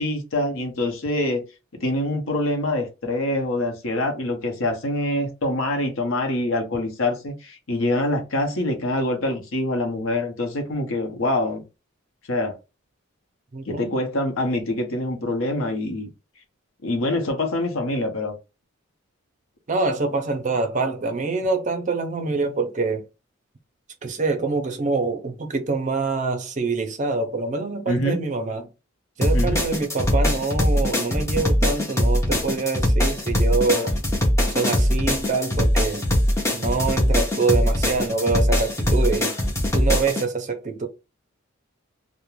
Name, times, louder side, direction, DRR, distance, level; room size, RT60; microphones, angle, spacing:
voice 1, 0.0-1.4 1.8-11.6 12.3-12.6 13.7-16.1 16.8-18.3 27.9-28.2 29.3-29.6, left 1 dB, 75° left, 0.7 m, -25 dB
voice 2, 13.5-14.0 19.7-23.1 24.0-28.7 29.2-34.0 34.5-36.1 36.5-39.3 39.7-40.9, right 3 dB, 35° right, 0.5 m, -25 dB
sound 1, 29.2-40.2, left 1 dB, 15° left, 0.6 m, -21 dB
2.4 x 2.1 x 3.0 m
head